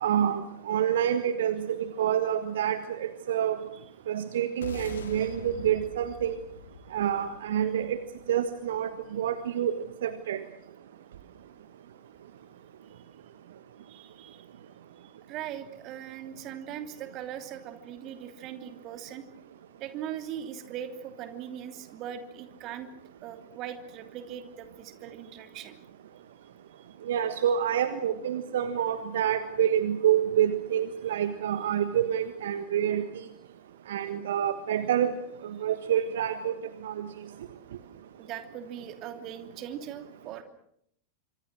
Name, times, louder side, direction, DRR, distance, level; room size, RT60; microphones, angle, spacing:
voice 1, 0.0-3.6 4.1-6.4 6.9-8.0 8.3-10.4 27.1-33.0 33.9-35.2 35.4-36.6 36.8-37.1, right 10 dB, 60° right, 11 dB, 1.5 m, -27 dB
sound 1, 4.6-9.1, left 5 dB, 65° left, 3.1 m, -44 dB
voice 2, 13.9-14.4 15.3-19.2 19.8-22.9 23.2-25.8 26.8-26.9 38.2-40.4, right 9 dB, 35° right, 8 dB, 2.9 m, -40 dB
27.0 x 25.5 x 6.2 m, 0.70 s
figure-of-eight pair, 90°, 0 cm